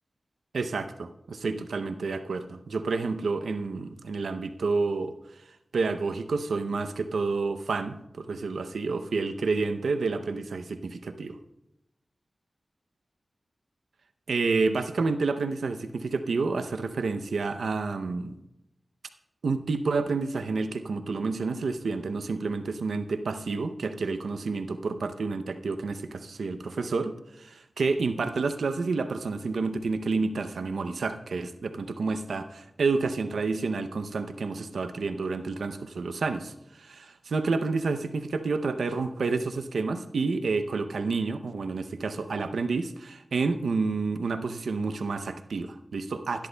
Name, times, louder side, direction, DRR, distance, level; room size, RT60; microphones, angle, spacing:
voice 1, 0.5-5.1 5.7-11.4 14.3-18.4 19.4-46.5, right 4 dB, 90° right, 9 dB, 0.6 m, -29 dB
16.5 x 12.0 x 2.2 m, 0.86 s
cardioid pair, 40°, 0 cm